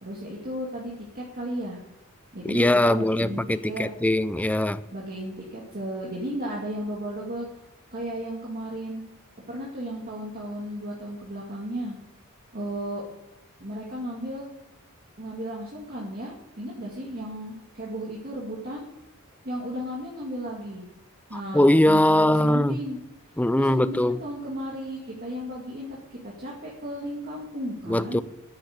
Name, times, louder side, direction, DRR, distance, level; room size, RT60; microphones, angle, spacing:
voice 1, 0.0-1.8 2.3-3.9 4.9-7.4 7.9-9.0 9.5-12.0 12.5-13.0 13.6-14.5 15.2-18.8 19.4-20.9 21.3-23.0 23.6-28.2, equal, 45° right, 2.3 m, -34 dB
voice 2, 2.4-4.8 21.3-22.8 23.4-24.2 27.9-28.2, left 1 dB, 5° left, 0.5 m, -21 dB
9.6 x 8.9 x 9.5 m
head